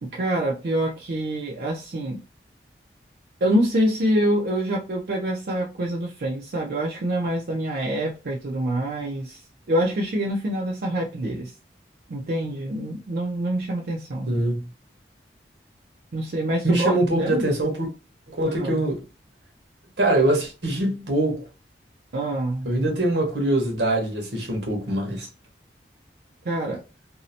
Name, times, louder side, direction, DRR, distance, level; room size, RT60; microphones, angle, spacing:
voice 1, 0.0-2.2 3.4-9.4 9.7-11.5 12.1-14.3 16.1-17.4 18.4-18.8 22.1-22.7 26.4-26.8, right 1 dB, 60° right, 0.4 m, -26 dB
voice 2, 14.3-14.7 16.6-17.9 18.3-19.0 20.0-21.4 22.6-25.3, right 1 dB, 80° right, 0.9 m, -23 dB
2.7 x 2.0 x 2.6 m
head